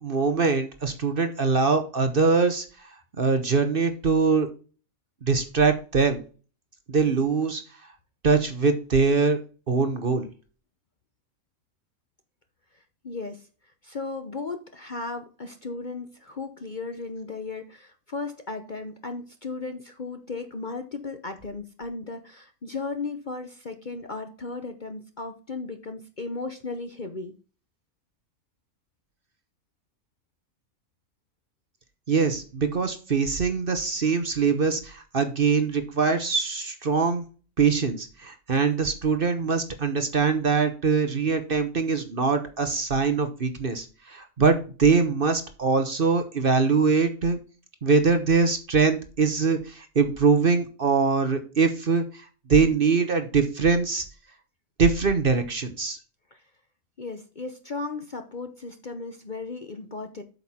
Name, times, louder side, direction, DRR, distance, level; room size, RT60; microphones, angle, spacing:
voice 1, 0.0-2.9 3.2-4.5 5.2-6.2 6.9-7.6 8.2-9.4 9.7-10.3 32.1-37.3 37.6-47.4 47.8-54.0 54.8-56.0, right 4 dB, 40° right, 8 dB, 1.1 m, -23 dB
voice 2, 12.7-13.5 13.8-27.3 56.3-56.4 57.0-60.2, left 3 dB, 40° left, 7 dB, 0.8 m, -36 dB
8.2 x 6.6 x 4.3 m, 0.36 s
omnidirectional pair, 1.5 m